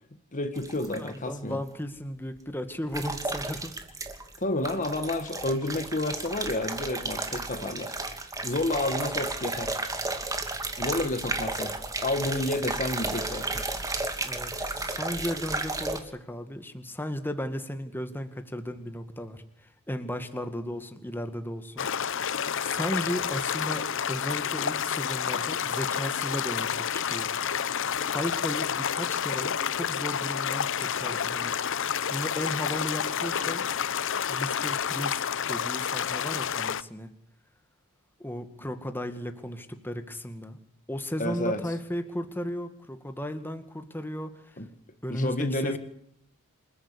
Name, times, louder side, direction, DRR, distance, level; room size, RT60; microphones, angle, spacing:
voice 1, 0.3-1.6 4.4-8.0 8.4-9.7 10.8-11.7 12.0-13.6 41.2-41.6 44.6-44.7 45.1-45.8, left 2 dB, 35° left, 9 dB, 1.7 m, -30 dB
sound 1, 0.6-1.2 2.9-4.4 4.6-16.0, right 2 dB, 15° right, 2.7 m, -33 dB
voice 2, 1.0-3.7 14.2-19.4 19.9-21.9 22.6-27.3 28.1-31.5 32.1-33.6 34.3-35.2 35.5-37.1 38.2-40.6 40.9-44.4 45.0-45.8, equal, 10° left, 8 dB, 2.0 m, -35 dB
sound 2, 21.8-36.8, left 8 dB, 60° left, 0.8 m, -29 dB
28.5 x 14.5 x 8.5 m, 0.75 s
head